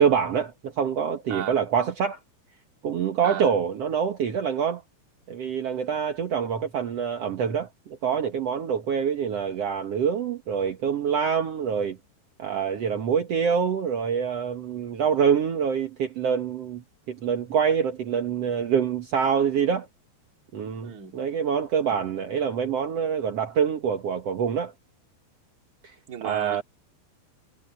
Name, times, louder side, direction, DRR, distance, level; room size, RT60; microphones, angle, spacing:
voice 1, 0.0-2.2 2.8-4.8 5.3-12.0 12.4-19.9 20.5-24.7 25.8-25.9 26.2-26.6, right 7 dB, 70° right, 1.5 m, -25 dB
voice 2, 1.3-1.6 3.2-3.5 20.8-21.2 21.9-22.0 26.1-26.6, right 9 dB, 35° right, 1.8 m, -35 dB
omnidirectional pair, 5.0 m